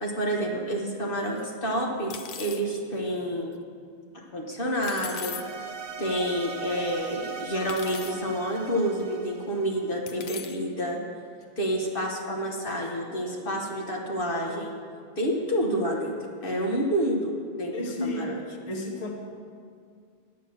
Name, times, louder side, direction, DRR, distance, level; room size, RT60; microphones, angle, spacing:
voice 1, 0.0-3.5 4.1-5.4 6.0-11.0 11.6-14.7 15.2-16.1 16.4-18.4, equal, 60° left, 0 dB, 1.3 m, -29 dB
sound 1, 1.4-1.5 2.1-2.6 4.8-5.4 6.4-6.5 7.7-8.1 9.0-9.1 10.1-10.6, left 9 dB, 75° left, 0.9 m, -39 dB
sound 2, 5.0-10.4, right 6 dB, 60° right, 1.0 m, -40 dB
voice 2, 17.7-18.3 18.7-19.1, left 1 dB, 35° left, 1 dB, 1.2 m, -32 dB
9.5 x 8.3 x 7.0 m, 2.2 s
omnidirectional pair, 1.1 m